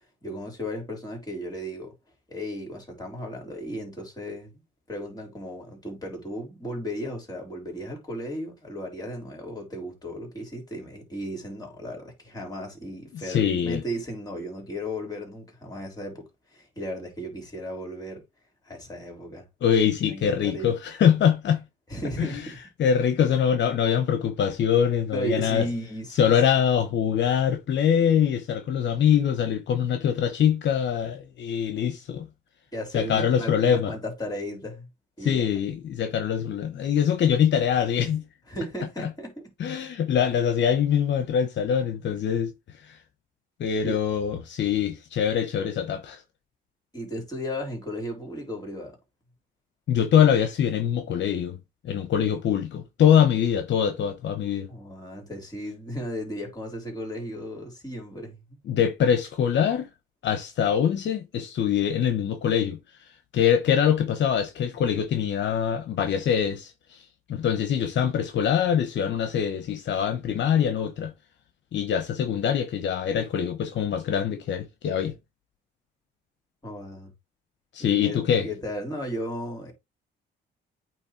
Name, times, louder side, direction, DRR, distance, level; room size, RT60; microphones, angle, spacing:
voice 1, 0.2-1.9 2.3-4.6 4.9-18.2 18.6-19.4 20.1-20.7 21.9-22.6 25.1-26.3 32.7-34.9 35.2-35.5 38.5-39.4 43.8-44.0 46.9-49.0 54.7-58.6 76.6-77.1 77.8-79.7, equal, 20° left, 3.8 m, -35 dB
voice 2, 13.2-13.8 19.6-21.6 22.2-22.4 22.8-25.7 26.2-32.3 32.9-33.9 35.2-38.2 39.6-42.5 42.8-43.0 43.6-46.2 49.9-51.6 51.8-54.7 58.7-59.9 60.2-62.8 63.3-67.0 67.3-71.1 71.7-75.1 77.7-78.5, left 8 dB, 65° left, 0.9 m, -23 dB
8.7 x 3.1 x 4.4 m
cardioid pair, 90°, 20 cm